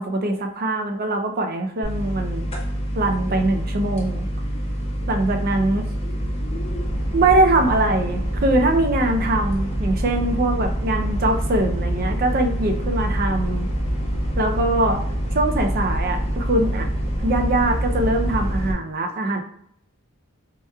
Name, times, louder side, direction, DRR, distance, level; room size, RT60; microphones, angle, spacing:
voice 1, 0.0-2.5 3.0-4.3 5.1-5.9 7.1-13.7 14.4-15.0 15.3-16.9 17.2-19.4, right 2 dB, 45° right, 5 dB, 0.5 m, -22 dB
sound 1, 1.8-18.7, equal, 30° left, 0.8 m, -25 dB
4.4 x 2.9 x 2.3 m, 0.68 s
head